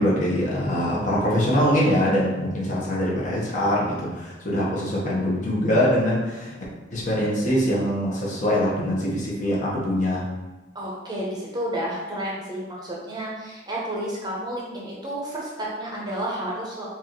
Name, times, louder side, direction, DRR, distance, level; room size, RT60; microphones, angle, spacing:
voice 1, 0.0-6.5 6.9-10.2, equal, 45° left, -5 dB, 1.0 m, -23 dB
voice 2, 10.7-16.9, right 1 dB, 25° right, -4 dB, 0.8 m, -31 dB
4.5 x 2.6 x 3.0 m, 1.2 s
head